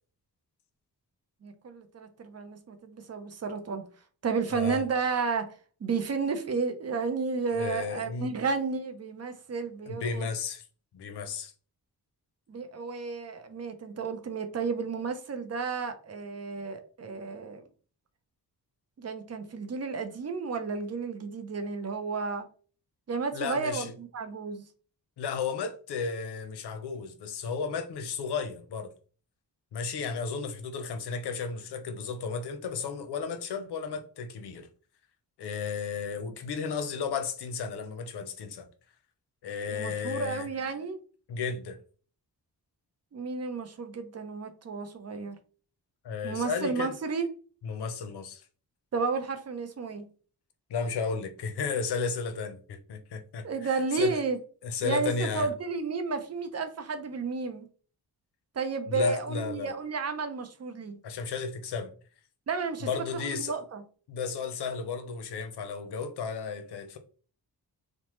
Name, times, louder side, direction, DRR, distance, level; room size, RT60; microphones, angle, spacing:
voice 1, 1.4-3.9 4.2-5.5 5.8-10.3 12.5-17.6 19.0-22.5 23.1-24.6 39.7-41.0 43.1-45.4 46.2-47.3 48.9-50.0 53.4-54.4 54.8-57.7 58.6-61.0 62.5-63.8, right 4 dB, 40° right, 0.5 m, -32 dB
voice 2, 4.5-4.8 7.5-8.3 9.9-10.6 10.9-11.5 23.3-23.9 25.2-28.9 29.7-34.7 35.4-38.7 39.4-40.5 41.3-41.8 46.0-46.9 47.6-48.4 50.7-53.5 53.9-54.2 54.6-55.5 58.9-59.7 61.0-61.9 62.8-63.6 64.1-67.0, left 5 dB, 90° left, 0.6 m, -33 dB
3.1 x 2.0 x 3.0 m
wide cardioid pair, 95°, 39 cm